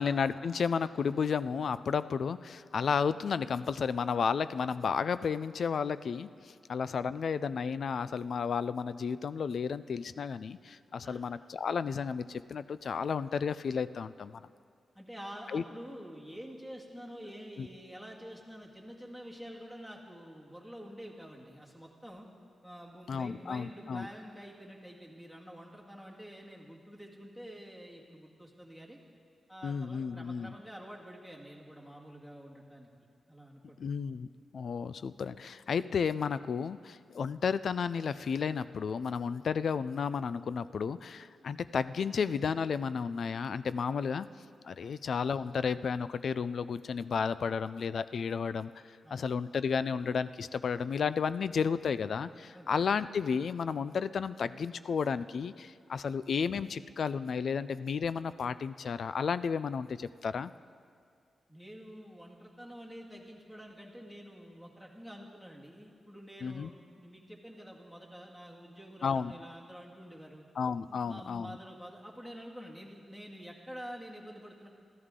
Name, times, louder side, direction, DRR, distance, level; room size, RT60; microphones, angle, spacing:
voice 1, 0.0-14.4 15.5-15.6 17.6-17.7 23.1-24.1 29.6-30.5 33.8-34.3 34.5-44.3 44.6-60.5 66.4-66.7 69.0-69.3 70.6-71.6, left 6 dB, 55° left, 15 dB, 0.4 m, -32 dB
voice 2, 14.9-22.3 22.6-29.0 29.5-32.9 33.3-33.8 44.8-44.9 49.0-49.2 52.5-52.7 61.5-70.5 70.9-74.7, equal, 5° left, -2 dB, 1.9 m, -48 dB
24.5 x 14.5 x 3.8 m, 2.2 s
wide cardioid pair, 155°, 0 cm